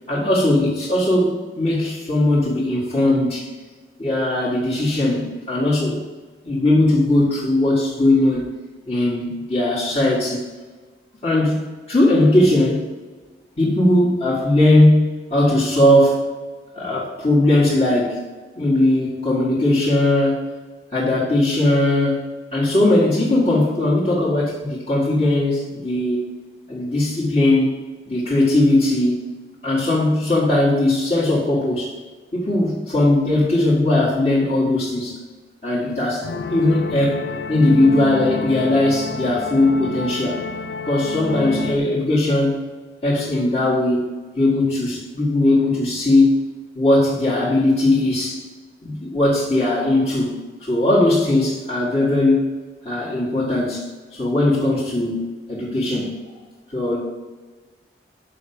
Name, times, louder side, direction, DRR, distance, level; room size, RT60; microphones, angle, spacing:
voice 1, 0.1-3.5 4.0-6.0 6.4-8.5 8.9-10.4 11.2-11.6 11.9-12.8 13.6-16.2 16.7-18.2 18.6-20.5 20.9-26.2 26.7-27.8 28.1-29.3 29.6-32.0 32.3-35.2 35.6-40.4 40.9-42.6 43.0-46.3 46.8-48.4 48.8-50.4 50.6-52.4 52.8-53.9 54.1-56.3 56.7-57.0, left 1 dB, 35° left, -9 dB, 1.9 m, -19 dB
sound 1, 36.2-41.8, left 4 dB, 75° left, 0.5 m, -29 dB
6.9 x 5.8 x 7.2 m, 1.3 s
head